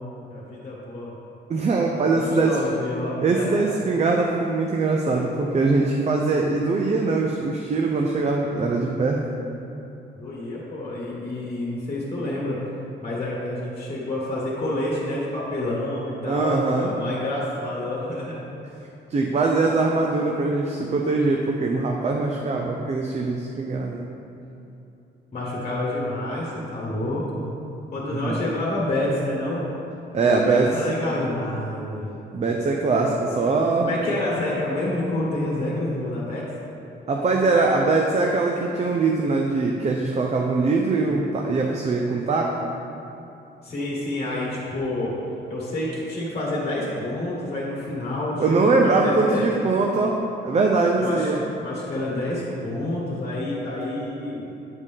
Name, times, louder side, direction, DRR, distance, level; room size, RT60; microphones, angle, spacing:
voice 1, 0.3-1.1 2.1-3.7 10.1-12.6 13.0-18.4 25.3-27.4 27.9-29.6 30.2-32.1 33.8-36.5 43.6-45.1 45.5-49.5 51.0-51.3 51.6-54.4, left 1 dB, 35° left, -5 dB, 1.6 m, -28 dB
voice 2, 1.5-2.6 3.2-9.2 16.2-16.9 19.1-24.0 28.1-28.4 30.1-30.7 32.3-33.9 37.1-42.6 48.4-51.4, right 3 dB, 35° right, 0 dB, 0.6 m, -22 dB
8.1 x 5.2 x 3.6 m, 2.8 s
cardioid pair, 90°, 20 cm